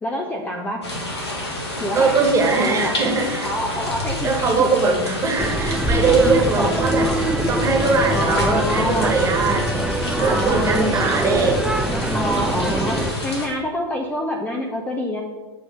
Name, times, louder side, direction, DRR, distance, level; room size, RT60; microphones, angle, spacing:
voice 1, 0.0-0.8 1.8-2.3 2.6-3.0 3.4-5.2 6.6-7.1 8.1-9.2 10.2-11.5 12.1-15.2, equal, 10° left, 1 dB, 0.8 m, -26 dB
sound 1, 0.8-13.5, left 1 dB, 80° left, 2.0 m, -29 dB
voice 2, 1.9-3.5 4.2-7.1 7.5-9.7 10.2-11.6, right 4 dB, 20° right, 2 dB, 1.8 m, -20 dB
sound 2, 5.4-13.1, right 1 dB, 5° right, 0.5 m, -23 dB
8.2 x 3.9 x 6.4 m, 1.2 s
hypercardioid pair, 100°, 14 cm